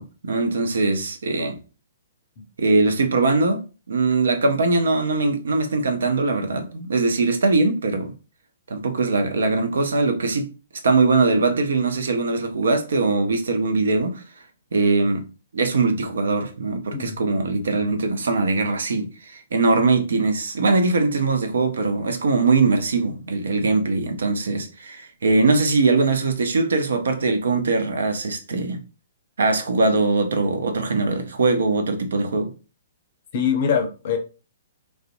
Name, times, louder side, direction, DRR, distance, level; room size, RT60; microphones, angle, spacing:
voice 1, 0.0-1.6 2.6-3.6 3.9-8.1 8.7-10.5 10.8-14.2 14.7-15.2 15.5-28.8 29.4-32.5, right 3 dB, 60° right, 0.4 m, -21 dB
voice 2, 33.3-34.2, left 7 dB, 45° left, 0.5 m, -23 dB
2.5 x 2.1 x 2.4 m
figure-of-eight pair, 120°, 0 cm